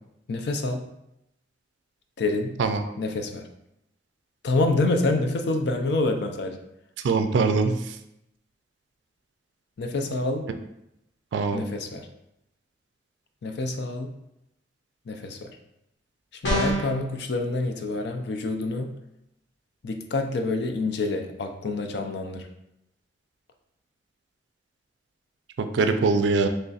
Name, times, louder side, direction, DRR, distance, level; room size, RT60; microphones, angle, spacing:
voice 1, 0.3-0.9 2.2-2.6 3.0-3.4 4.4-6.6 9.8-10.5 11.5-12.1 13.4-14.1 15.1-15.5 16.4-18.9 19.8-22.5, left 2 dB, 65° left, 5 dB, 0.4 m, -27 dB
voice 2, 7.0-7.9 11.3-11.6 25.6-26.5, right 4 dB, 80° right, 8 dB, 0.3 m, -22 dB
sound 1, 16.4-17.0, equal, 85° left, 1.1 m, -24 dB
3.9 x 3.2 x 2.4 m, 0.83 s
head